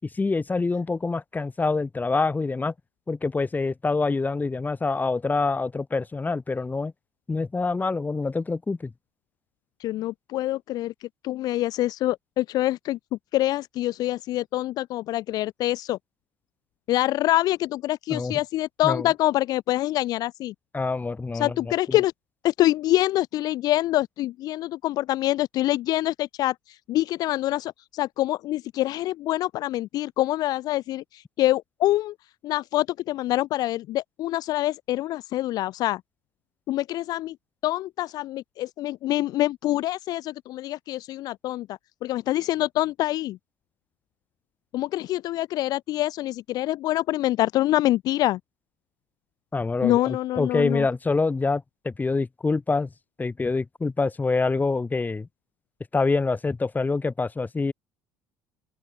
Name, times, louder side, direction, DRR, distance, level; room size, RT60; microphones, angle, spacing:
voice 1, 0.1-2.7 3.1-6.9 7.3-8.9 18.1-18.4 18.8-19.1 20.7-22.0 49.5-52.9 53.2-55.3 55.9-57.7, left 3 dB, 20° left, 3.5 m, -26 dB
voice 2, 9.8-13.0 13.3-16.0 16.9-20.5 21.3-22.1 22.4-32.1 32.4-36.0 36.7-37.4 37.6-43.4 44.7-48.4 49.8-50.9, left 15 dB, 55° left, 0.5 m, -25 dB
open air
figure-of-eight pair, 60°, 8 cm